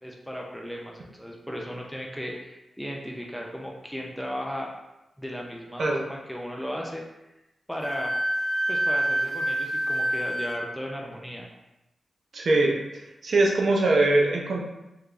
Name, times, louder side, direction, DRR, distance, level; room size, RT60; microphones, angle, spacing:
voice 1, 0.0-4.7 5.2-7.0 7.7-8.1 8.7-11.5, equal, ahead, -1 dB, 0.4 m, -36 dB
Wind instrument woodwind instrument, 7.8-10.6, right 1 dB, 20° left, 1.0 m, -27 dB
voice 2, 12.3-14.6, right 2 dB, 55° right, -1 dB, 0.6 m, -22 dB
3.3 x 3.3 x 2.4 m, 0.93 s
wide cardioid pair, 155°, 0 cm